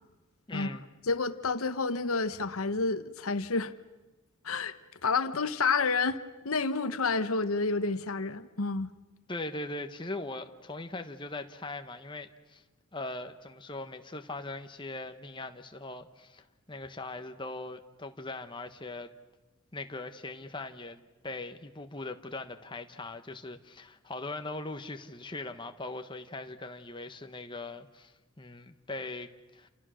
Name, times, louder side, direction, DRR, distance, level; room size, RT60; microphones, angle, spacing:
voice 1, 0.5-0.8 9.3-12.6 12.9-19.1 19.7-29.7, left 2 dB, 20° left, 1.2 m, -40 dB
voice 2, 1.1-3.7 4.4-4.7 5.0-8.9, left 4 dB, 75° left, 1.0 m, -29 dB
29.0 x 28.5 x 6.4 m
head